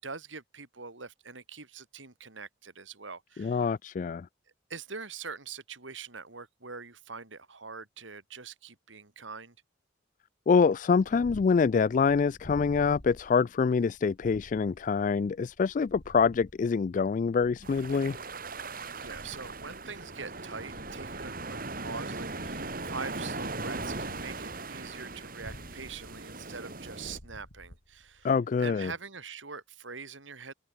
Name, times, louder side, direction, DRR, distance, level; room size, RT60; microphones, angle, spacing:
voice 1, 0.0-3.7 4.7-9.5 19.0-28.3 28.6-30.5, right 5 dB, 85° right, 3.3 m, -43 dB
voice 2, 3.4-4.3 10.5-18.2 28.2-28.9, left 5 dB, 40° left, 0.3 m, -25 dB
Purr, 10.8-28.4, equal, 70° left, 5.9 m, -52 dB
sound 1, 17.6-27.2, right 3 dB, 50° right, 4.6 m, -39 dB
head